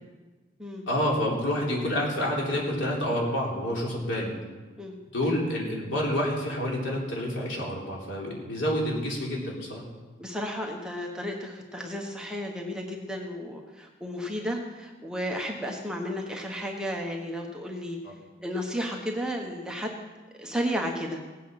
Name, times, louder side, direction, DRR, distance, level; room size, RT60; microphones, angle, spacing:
voice 1, 0.9-4.3 5.1-9.9, equal, 75° left, -3 dB, 3.5 m, -28 dB
voice 2, 10.2-18.0 18.4-20.0 20.4-21.2, equal, 5° right, 0 dB, 1.2 m, -33 dB
18.0 x 8.4 x 5.8 m, 1.3 s
head